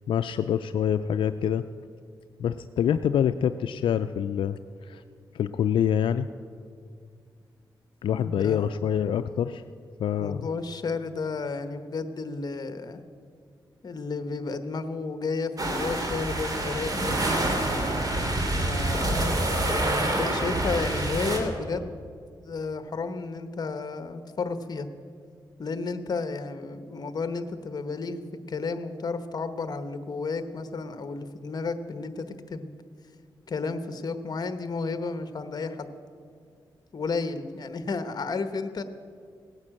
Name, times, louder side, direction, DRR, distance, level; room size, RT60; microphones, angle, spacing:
voice 1, 0.1-1.6 2.4-5.0 5.3-6.3 8.0-9.6 10.0-10.5, left 9 dB, 85° left, 10 dB, 0.4 m, -26 dB
voice 2, 8.2-8.8 10.2-13.0 13.8-17.2 18.6-21.9 22.4-24.9 25.6-28.2 28.5-32.7 33.5-35.9 36.9-38.8, left 4 dB, 50° left, 10 dB, 1.1 m, -32 dB
sound 1, 15.6-21.4, right 1 dB, 45° right, 2.6 m, -27 dB
17.5 x 9.7 x 7.5 m, 2.2 s
cardioid pair, 85°, 8 cm